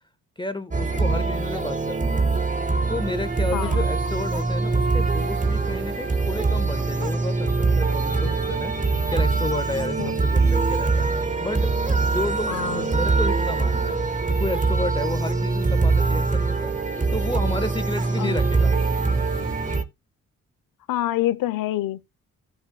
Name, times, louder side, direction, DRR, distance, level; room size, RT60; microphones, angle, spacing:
voice 1, 0.4-2.2 2.9-11.1 11.4-11.7 12.0-14.0 14.3-16.8 17.1-18.7, left 2 dB, 15° left, 1.3 m, -31 dB
sound 1, 0.7-19.8, right 3 dB, 20° right, 1.4 m, -23 dB
sound 2, 3.2-19.8, right 4 dB, 75° right, 3.3 m, -46 dB
voice 2, 3.5-3.8 10.0-10.1 12.5-12.9 18.2-18.4 20.9-22.0, left 14 dB, 75° left, 0.8 m, -26 dB
15.5 x 5.5 x 2.3 m
hypercardioid pair, 45°, 34 cm